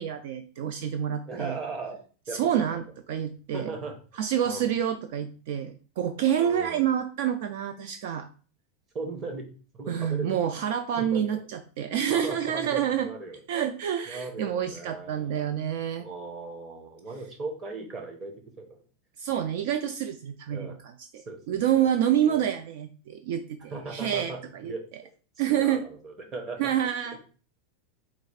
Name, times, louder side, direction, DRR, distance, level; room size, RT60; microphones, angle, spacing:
voice 1, 0.0-1.6 2.3-3.7 4.2-8.3 9.9-13.1 13.5-16.1 19.2-20.7 21.1-24.7 25.4-25.8 26.6-27.2, right 9 dB, 55° right, 8 dB, 0.3 m, -28 dB
voice 2, 1.3-2.0 2.3-2.8 3.5-4.0 4.4-4.8 6.4-6.9 8.9-9.5 9.7-10.5 11.0-11.4 12.1-13.4 14.1-15.5 16.0-18.8 20.5-20.8 21.3-21.9 22.2-22.5 23.7-26.7 27.1-27.2, right 3 dB, 20° right, 3 dB, 0.8 m, -38 dB
4.2 x 2.4 x 4.7 m, 0.39 s
supercardioid pair, 170°, 0 cm